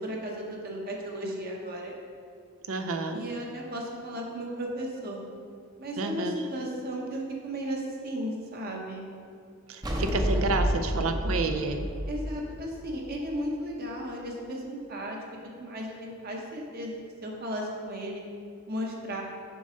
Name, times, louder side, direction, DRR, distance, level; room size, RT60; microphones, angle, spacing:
voice 1, 0.0-1.9 3.1-5.2 5.8-9.1 12.1-15.2 15.4-18.2 18.7-19.2, equal, 45° right, -1 dB, 1.0 m, -35 dB
voice 2, 2.7-3.2 6.0-6.4 9.7-11.9, right 3 dB, 70° right, 7 dB, 0.5 m, -29 dB
sound 1, 9.8-13.3, equal, 20° right, 0.7 m, -29 dB
6.9 x 5.3 x 3.8 m, 2.3 s
head